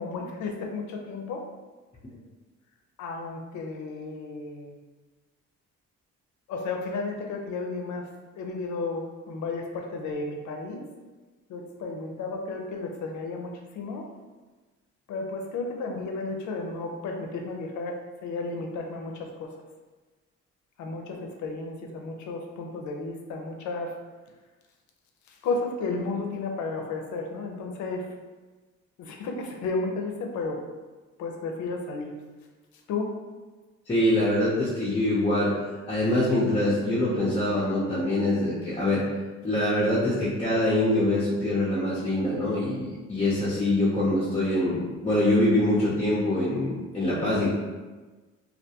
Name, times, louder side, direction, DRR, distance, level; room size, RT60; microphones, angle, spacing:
voice 1, 0.0-1.4 3.0-4.7 6.5-8.1 8.3-10.9 11.5-14.1 15.1-19.5 20.8-23.9 25.3-28.1 29.0-30.6 31.2-32.1 32.9-33.1, left 3 dB, 70° left, 2 dB, 0.5 m, -33 dB
voice 2, 33.9-35.5 35.9-39.0 39.4-47.5, left 1 dB, 20° left, -8 dB, 0.6 m, -24 dB
2.4 x 2.2 x 2.7 m, 1.3 s
cardioid pair, 90°, 30 cm